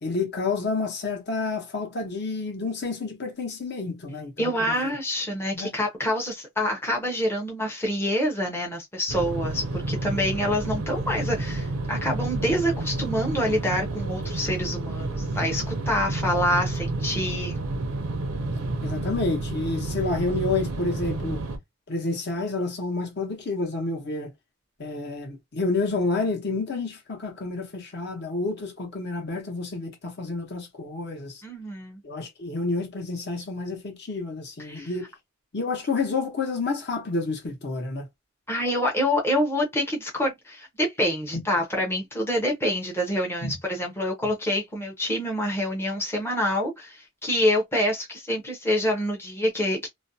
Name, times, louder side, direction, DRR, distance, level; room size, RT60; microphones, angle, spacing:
voice 1, 0.0-4.9 5.5-5.7 18.4-18.5 18.8-21.4 21.9-24.3 24.8-31.4 32.0-35.1 35.5-38.1 41.3-41.4 43.4-43.6, left 3 dB, 50° left, 0.8 m, -29 dB
voice 2, 4.4-17.6 31.4-32.0 34.6-34.9 38.5-49.9, left 1 dB, 10° left, 0.6 m, -26 dB
sound 1, 9.1-21.6, right 2 dB, 70° right, 0.6 m, -30 dB
2.4 x 2.1 x 2.6 m
head